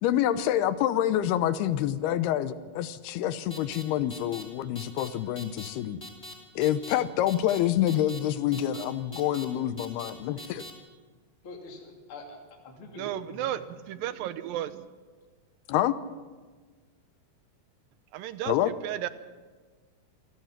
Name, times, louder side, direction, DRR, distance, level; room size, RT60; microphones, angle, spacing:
voice 1, 0.0-6.0 6.6-10.7 15.7-16.0 18.5-18.7, left 12 dB, 90° left, 2.8 m, -27 dB
sound 1, 3.5-3.8 4.1-4.4 4.8-5.1 5.4-5.7 6.0-6.3 6.6-6.9 7.3-7.6 7.9-8.2 8.5-8.8 9.1-9.5 9.8-10.1 10.4-10.7, left 1 dB, 20° left, 2.5 m, -42 dB
voice 2, 11.4-13.6, left 2 dB, 35° left, 3.3 m, -45 dB
voice 3, 13.0-14.9 18.1-18.5 18.8-19.1, right 12 dB, 75° right, 2.4 m, -33 dB
27.5 x 16.5 x 5.9 m
omnidirectional pair, 4.4 m